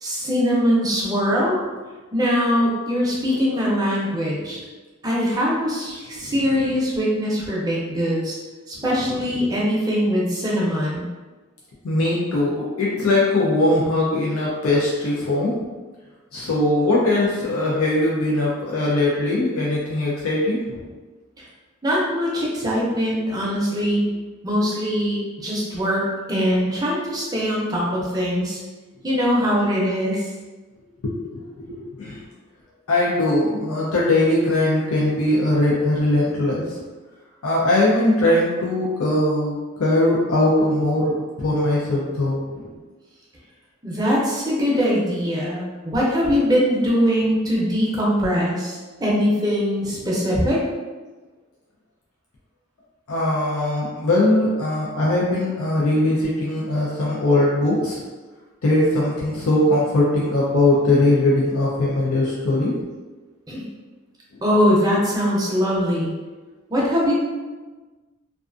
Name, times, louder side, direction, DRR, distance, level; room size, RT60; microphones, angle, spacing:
voice 1, 0.0-1.6 2.1-4.6 5.0-8.4 8.7-11.1 21.4-21.5 21.8-24.1 24.4-28.6 29.0-30.3 43.8-50.6 63.5-63.7 64.4-66.1 66.7-67.1, equal, 20° right, -5 dB, 0.5 m, -22 dB
voice 2, 9.2-9.6 11.8-15.5 16.3-20.8 31.0-31.4 31.7-32.2 32.9-36.8 37.4-42.7 53.1-58.0 58.6-62.7, left 1 dB, 90° left, -5 dB, 0.5 m, -20 dB
2.5 x 2.3 x 2.4 m, 1.3 s
head